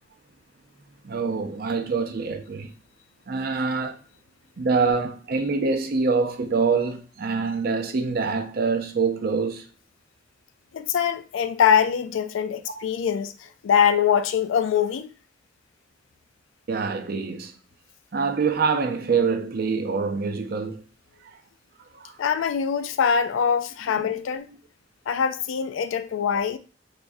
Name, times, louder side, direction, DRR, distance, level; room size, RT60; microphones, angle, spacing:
voice 1, 1.0-2.7 3.3-4.0 4.6-9.7 16.7-17.5 18.1-20.8 21.2-21.4 21.9-22.2, right 4 dB, 50° right, 0.5 m, -25 dB
voice 2, 10.7-15.1 22.2-24.5 25.1-26.6, left 7 dB, 85° left, 0.4 m, -23 dB
3.4 x 3.3 x 2.6 m
head